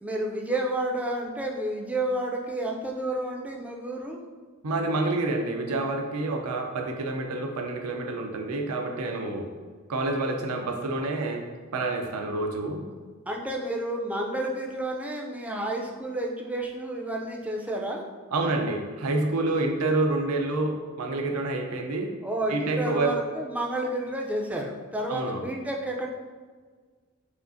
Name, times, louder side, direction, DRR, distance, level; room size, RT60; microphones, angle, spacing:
voice 1, 0.0-4.2 13.3-18.0 22.2-26.1, right 1 dB, 5° right, -1 dB, 0.3 m, -30 dB
voice 2, 4.6-9.5 9.9-11.4 11.7-12.8 18.3-22.1 22.5-23.1 25.1-25.4, right 2 dB, 90° right, 3 dB, 0.5 m, -28 dB
5.0 x 2.4 x 2.5 m, 1.5 s
head